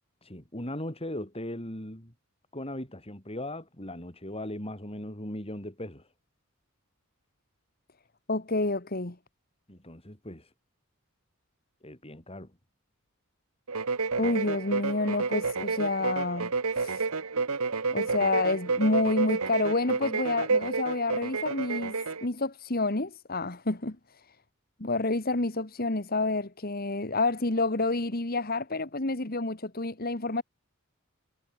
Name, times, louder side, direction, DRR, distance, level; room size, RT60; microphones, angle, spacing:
voice 1, 0.2-2.1 2.5-6.1 9.7-10.5 11.8-12.6, left 1 dB, 25° left, 5.6 m, -38 dB
voice 2, 8.3-9.2 14.2-17.1 17.9-24.0 24.8-30.4, left 2 dB, 45° left, 1.9 m, -29 dB
sound 1, 13.7-22.3, right 4 dB, 90° right, 1.5 m, -30 dB
head